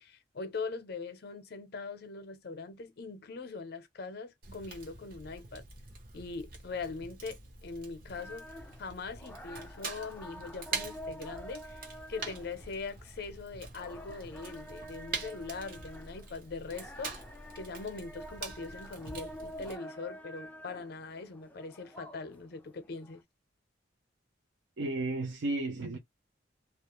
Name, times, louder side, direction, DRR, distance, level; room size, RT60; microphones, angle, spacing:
voice 1, 0.0-5.6 6.1-8.5 8.8-11.8 12.1-17.2 17.5-23.2, left 4 dB, 55° left, 0.6 m, -41 dB
Fire, 4.4-19.8, right 4 dB, 50° right, 0.8 m, -45 dB
sound 1, 8.2-23.2, equal, 10° left, 0.3 m, -48 dB
voice 2, 24.8-26.0, right 2 dB, 70° right, 0.5 m, -33 dB
2.3 x 2.0 x 2.9 m
head